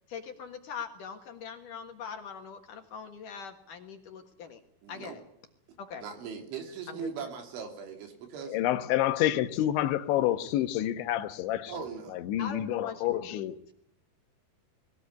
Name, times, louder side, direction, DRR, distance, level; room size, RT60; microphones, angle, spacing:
voice 1, 0.1-4.6 4.9-5.2 5.8-6.0 6.9-7.1 12.4-13.7, left 6 dB, 60° left, 2.6 m, -42 dB
voice 2, 4.8-5.2 6.0-8.6 11.7-12.2, right 6 dB, 85° right, 5.4 m, -40 dB
voice 3, 8.5-11.8 12.1-13.6, left 13 dB, 80° left, 3.4 m, -28 dB
22.0 x 16.0 x 9.5 m
omnidirectional pair, 5.3 m